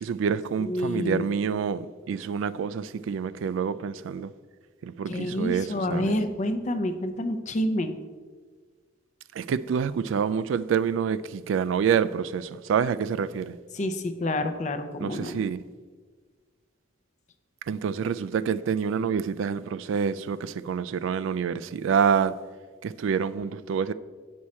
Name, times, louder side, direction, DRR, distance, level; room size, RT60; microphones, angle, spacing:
voice 1, 0.0-4.3 4.8-6.2 9.4-13.6 15.0-15.6 17.7-22.4 22.8-23.9, right 6 dB, 70° right, 0.3 m, -27 dB
voice 2, 0.6-1.3 5.1-7.9 13.7-15.4, left 1 dB, 35° left, 0.6 m, -28 dB
8.4 x 6.3 x 4.2 m
head